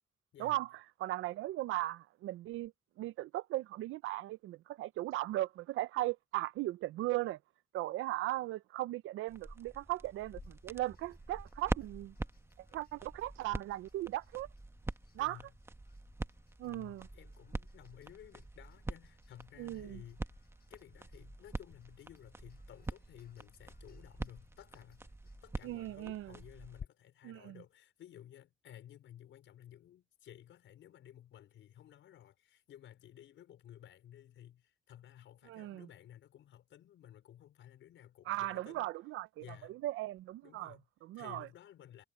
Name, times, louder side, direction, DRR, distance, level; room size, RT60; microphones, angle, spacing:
voice 1, 0.4-2.7 3.0-7.4 7.7-12.1 12.7-14.5 15.1-15.4 16.6-17.1 19.6-20.0 25.6-26.4 27.2-27.6 35.5-35.9 38.3-41.5, right 16 dB, 90° right, 0.7 m, -38 dB
sound 1, 9.3-26.8, right 2 dB, 10° right, 1.2 m, -45 dB
sound 2, 10.2-26.9, left 7 dB, 50° left, 5.2 m, -61 dB
voice 2, 15.2-15.5 16.6-20.2 20.7-38.9 39.4-39.8 40.4-40.9 41.1-42.0, left 11 dB, 75° left, 5.3 m, -55 dB
cardioid pair, 90°, 20 cm